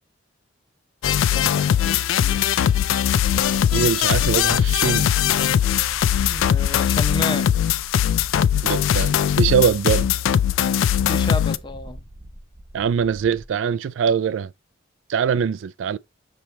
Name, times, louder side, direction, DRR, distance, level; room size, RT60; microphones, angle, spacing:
sound 1, 1.0-11.6, left 9 dB, 80° left, 0.3 m, -20 dB
voice 1, 1.3-2.5 6.3-7.5 11.1-12.0, left 2 dB, 25° left, 0.6 m, -31 dB
sound 2, 3.2-13.5, right 1 dB, 20° right, 0.8 m, -42 dB
voice 2, 3.7-5.1 8.6-10.1 12.7-14.5 15.1-16.0, right 7 dB, 70° right, 0.3 m, -22 dB
5.8 x 3.3 x 2.8 m
head